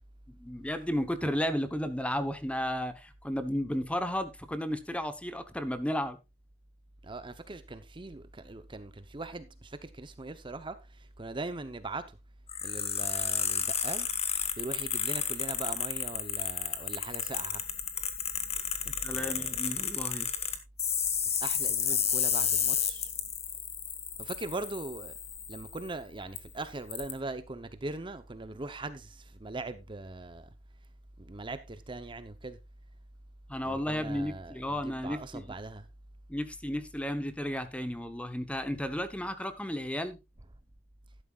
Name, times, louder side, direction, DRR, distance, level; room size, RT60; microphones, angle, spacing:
voice 1, 0.3-6.2 19.0-20.3 33.5-35.4 36.3-40.2, equal, 5° left, 1.0 m, -33 dB
voice 2, 7.0-12.2 12.6-14.1 14.6-17.6 18.8-19.6 21.4-23.1 24.2-25.1 25.5-30.5 31.2-32.6 33.6-35.9, right 2 dB, 25° right, 0.8 m, -40 dB
sound 1, 12.5-25.9 26.4-26.5 26.9-27.1, left 7 dB, 35° left, 1.5 m, -32 dB
12.5 x 11.0 x 2.4 m
head